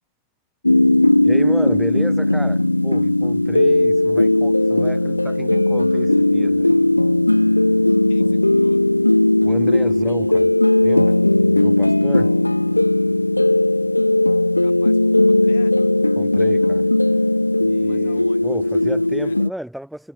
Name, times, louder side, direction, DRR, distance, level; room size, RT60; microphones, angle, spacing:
sound 1, 0.6-19.5, left 1 dB, 85° left, 0.5 m, -17 dB
voice 1, 1.2-6.7 9.4-10.5 10.8-11.2 11.5-12.3 16.2-16.9 17.6-20.1, right 1 dB, ahead, 1.6 m, -33 dB
voice 2, 8.1-8.8 14.6-15.8 17.8-18.6 19.0-19.4, left 8 dB, 65° left, 5.1 m, -48 dB
figure-of-eight pair, 90°, 0 cm